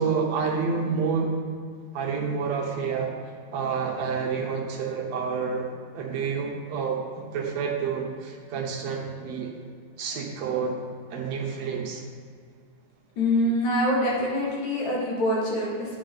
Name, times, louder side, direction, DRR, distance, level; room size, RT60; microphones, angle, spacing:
voice 1, 0.0-1.4 1.9-3.1 3.5-5.7 5.9-9.5 10.0-10.8 11.1-12.0, right 5 dB, 70° right, 0 dB, 1.9 m, -28 dB
voice 2, 13.2-16.0, left 1 dB, 85° left, -5 dB, 3.6 m, -25 dB
9.2 x 8.7 x 3.9 m, 2.2 s
omnidirectional pair, 3.5 m